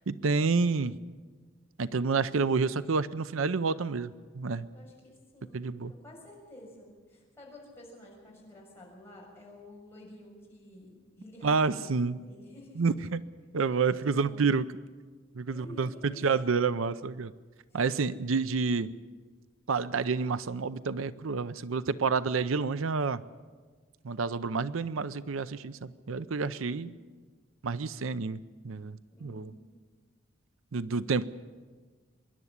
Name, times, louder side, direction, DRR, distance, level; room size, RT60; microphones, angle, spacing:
voice 1, 0.1-1.0 1.8-4.7 5.5-5.9 11.4-12.2 12.8-13.2 13.5-14.7 15.4-17.3 17.7-18.9 19.7-23.2 24.0-26.9 27.6-29.5 30.7-31.3, right 4 dB, 80° right, 15 dB, 0.6 m, -29 dB
voice 2, 4.7-12.8 13.7-14.4 15.5-16.3 17.7-17.8 26.6-27.0 29.2-29.7, left 1 dB, 10° left, -4 dB, 6.6 m, -51 dB
25.0 x 11.5 x 9.6 m, 1.4 s
head